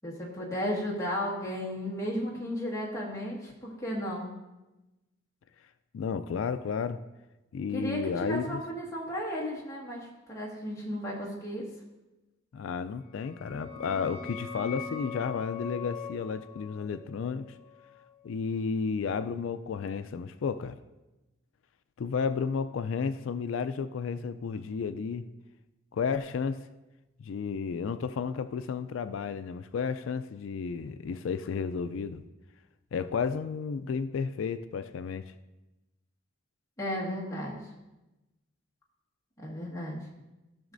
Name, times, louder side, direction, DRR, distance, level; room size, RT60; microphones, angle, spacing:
voice 1, 0.0-4.3 7.7-11.7 36.8-37.7 39.4-40.0, equal, 15° left, -5 dB, 1.7 m, -34 dB
voice 2, 5.9-7.0 7.5-8.6 12.5-17.5 18.2-20.8 22.0-25.3 25.9-26.7 27.2-32.2 32.9-35.3, left 5 dB, 90° left, 11 dB, 0.4 m, -32 dB
sound 1, 13.1-18.5, left 6 dB, 35° left, 1.6 m, -42 dB
14.5 x 6.3 x 2.6 m, 1.0 s
head